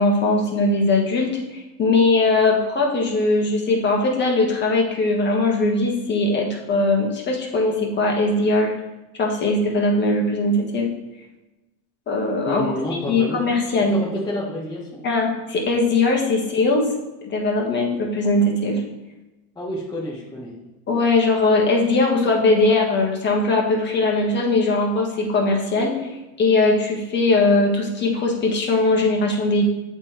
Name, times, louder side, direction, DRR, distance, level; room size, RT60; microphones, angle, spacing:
voice 1, 0.0-8.7 9.2-10.9 12.1-12.7 13.1-14.0 15.0-16.9 17.2-18.8 20.9-26.1 26.4-29.6, left 2 dB, 25° left, 0 dB, 1.5 m, -20 dB
voice 2, 12.5-13.4 13.9-15.0 19.6-20.5, left 1 dB, 10° left, -7 dB, 1.1 m, -29 dB
7.9 x 3.6 x 4.3 m, 1.0 s
supercardioid pair, 135°, 40 cm